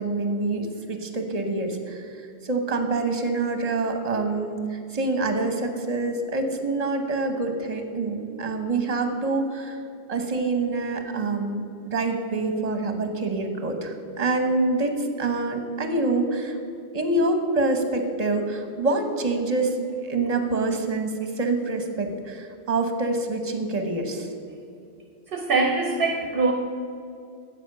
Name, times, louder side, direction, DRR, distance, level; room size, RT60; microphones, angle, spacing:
voice 1, 0.0-2.2 2.4-9.8 10.1-16.6 16.9-19.8 20.0-24.3, right 2 dB, 40° right, 6 dB, 1.1 m, -26 dB
voice 2, 25.3-26.5, right 3 dB, 60° right, 4 dB, 0.9 m, -23 dB
10.0 x 7.5 x 6.7 m, 2.6 s
omnidirectional pair, 1.1 m